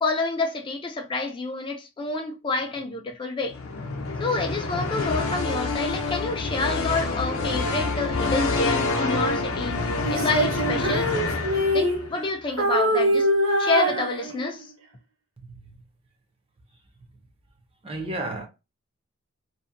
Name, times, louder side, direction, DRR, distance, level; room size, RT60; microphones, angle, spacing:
voice 1, 0.0-3.6 4.2-9.8 10.1-11.1 11.7-13.3 13.6-14.7, left 3 dB, 25° left, 0.3 m, -28 dB
sound 1, 3.5-12.2, left 3 dB, 80° left, 0.5 m, -27 dB
Female singing, 10.0-12.3 12.6-14.6, equal, 75° right, 0.9 m, -24 dB
voice 2, 15.4-15.8 17.8-18.5, right 2 dB, 30° right, 0.5 m, -33 dB
2.6 x 2.1 x 2.5 m
head